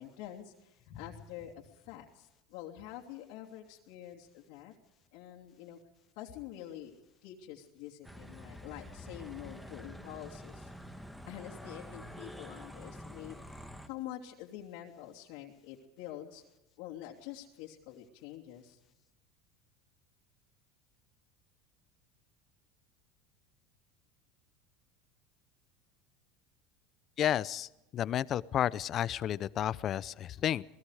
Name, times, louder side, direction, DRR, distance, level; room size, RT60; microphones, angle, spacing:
voice 1, 0.0-4.7 5.1-5.8 6.2-6.9 7.2-10.7 11.3-13.4 13.9-16.4 16.8-18.8, left 12 dB, 70° left, -1 dB, 2.8 m, -46 dB
sound 1, 8.0-13.9, equal, ahead, 1.4 m, -47 dB
voice 2, 27.2-30.6, left 11 dB, 35° left, 19 dB, 0.7 m, -32 dB
27.5 x 19.0 x 5.0 m, 0.91 s
supercardioid pair, 140°, 0 cm